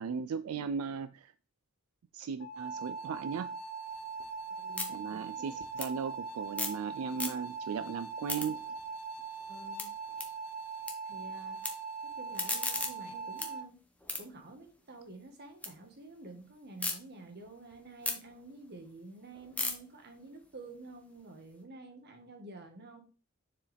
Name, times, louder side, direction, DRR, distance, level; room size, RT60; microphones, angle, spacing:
voice 1, 0.0-1.3 2.1-3.5 4.9-8.6, right 6 dB, 75° right, 0.4 m, -37 dB
sound 1, 2.4-13.6, right 5 dB, 80° left, 0.8 m, -41 dB
sound 2, 3.9-6.9 7.1-7.7 8.0-10.9 11.2-11.7 12.1-15.7 16.1-16.9 17.4-21.6, left 2 dB, 5° left, 1.0 m, -40 dB
voice 2, 4.6-5.6 9.5-9.9 11.0-11.6 12.2-13.8 14.2-23.0, right 2 dB, 50° right, 1.4 m, -50 dB
7.1 x 4.6 x 3.4 m
head